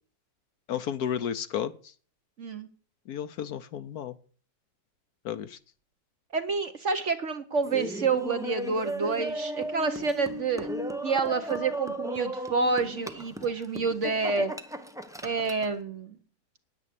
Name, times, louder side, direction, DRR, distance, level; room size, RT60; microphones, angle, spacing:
voice 1, 0.7-1.7 3.1-4.1 5.2-5.6, left 9 dB, 65° left, 12 dB, 1.1 m, -32 dB
voice 2, 2.4-2.7 6.3-14.5 15.2-16.2, right 4 dB, 50° right, 9 dB, 1.0 m, -28 dB
Laughter, 7.6-15.7, right 1 dB, 5° right, 0.3 m, -36 dB
9.8 x 9.7 x 6.7 m, 0.42 s
omnidirectional pair, 1.9 m